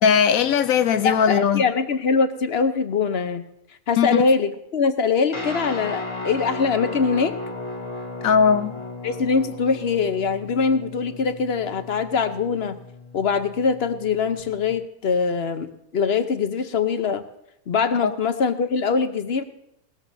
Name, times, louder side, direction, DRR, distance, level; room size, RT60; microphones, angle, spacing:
voice 1, 0.0-1.6 4.0-4.2 8.2-8.7 18.0-18.1, left 7 dB, 80° left, 1.2 m, -19 dB
voice 2, 1.0-3.4 3.9-7.3 9.0-12.8 13.1-15.7 15.9-17.2 17.7-19.4, left 5 dB, 55° left, 0.9 m, -23 dB
Guitar, 5.3-14.7, left 2 dB, 20° left, 1.8 m, -35 dB
18.5 x 13.5 x 2.7 m
omnidirectional pair, 1.4 m